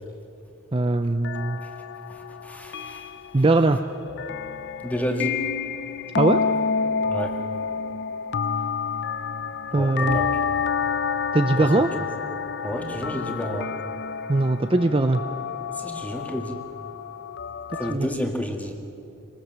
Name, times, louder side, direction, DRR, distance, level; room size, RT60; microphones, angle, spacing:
voice 1, 0.7-1.6 3.3-3.8 6.2-6.4 9.7-10.2 11.3-11.9 14.3-15.2 17.9-18.1, right 2 dB, 25° right, 7 dB, 0.6 m, -20 dB
sound 1, 1.2-18.0, left 6 dB, 55° left, 0.7 m, -29 dB
voice 2, 2.1-3.1 4.8-5.4 7.1-7.4 9.7-10.3 11.6-11.8 12.6-13.7 15.8-16.6 17.7-18.8, equal, 5° left, 3 dB, 2.1 m, -30 dB
27.0 x 20.0 x 7.5 m, 2.7 s
head